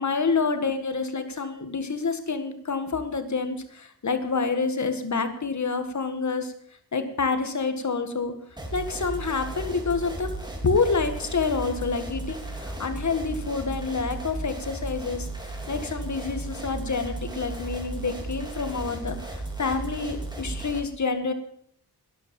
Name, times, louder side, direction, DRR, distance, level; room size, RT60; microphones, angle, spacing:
voice 1, 0.0-6.5 6.9-8.3 8.7-10.3 10.6-21.3, left 4 dB, 45° left, 8 dB, 1.9 m, -28 dB
sound 1, 8.6-20.8, right 2 dB, 10° right, 2.7 m, -35 dB
12.0 x 10.5 x 7.1 m, 0.66 s
wide cardioid pair, 105°, 38 cm